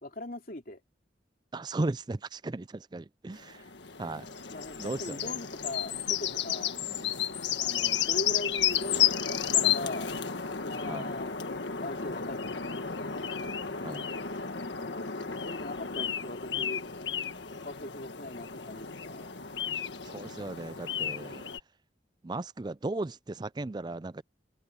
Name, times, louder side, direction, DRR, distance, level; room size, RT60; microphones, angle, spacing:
voice 1, 0.0-0.8 4.5-6.7 7.6-10.1 10.6-13.3 14.5-16.8 17.5-19.3, left 1 dB, 50° left, 3.1 m, -41 dB
voice 2, 1.5-3.6 4.0-4.3 4.8-5.3 10.9-11.1 13.8-14.1 20.0-21.5 22.2-24.2, right 2 dB, 25° right, 0.4 m, -36 dB
sound 1, 3.4-21.6, left 8 dB, 75° left, 1.6 m, -32 dB
open air
head